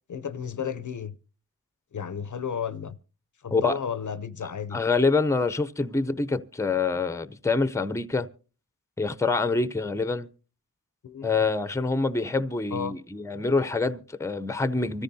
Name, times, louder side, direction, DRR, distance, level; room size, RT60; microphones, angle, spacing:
voice 1, 0.1-1.1 1.9-3.0 3.4-4.8 11.0-11.3 12.7-12.9, left 7 dB, 55° left, 0.6 m, -33 dB
voice 2, 4.4-8.3 9.0-10.3 11.2-15.0, left 3 dB, 10° left, 0.6 m, -26 dB
25.0 x 14.0 x 2.7 m
wide cardioid pair, 65°, 37 cm